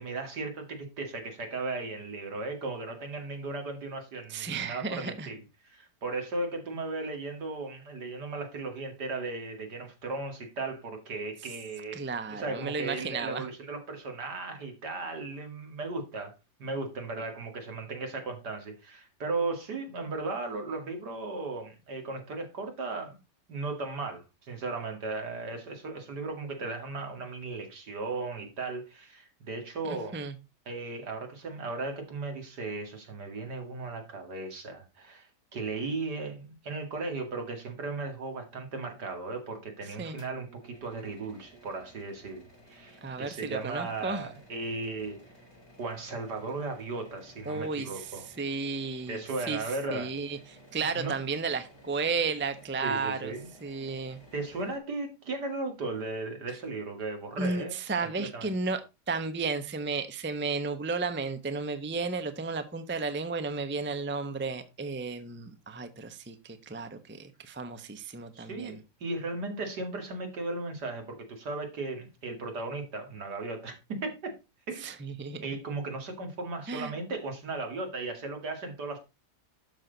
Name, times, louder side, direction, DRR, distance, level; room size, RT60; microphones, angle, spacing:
voice 1, 0.0-16.3 16.6-23.2 23.5-30.2 30.7-45.2 45.8-48.3 49.1-50.1 50.9-51.2 52.8-53.5 54.3-57.7 58.0-58.5 68.3-73.8 74.0-74.3 74.7-74.8 75.4-79.0, right 3 dB, 75° right, 2.8 m, -36 dB
voice 2, 4.3-5.3 11.9-13.4 29.8-30.3 40.0-40.2 43.0-44.3 47.5-48.0 48.4-49.2 49.5-49.6 49.9-50.4 50.7-53.3 53.6-54.2 57.4-58.8 59.1-68.8 74.8-75.4 76.7-76.9, right 4 dB, 10° right, 0.7 m, -33 dB
sound 1, 40.2-54.8, equal, 40° left, 3.6 m, -55 dB
12.0 x 6.2 x 4.0 m
omnidirectional pair, 1.8 m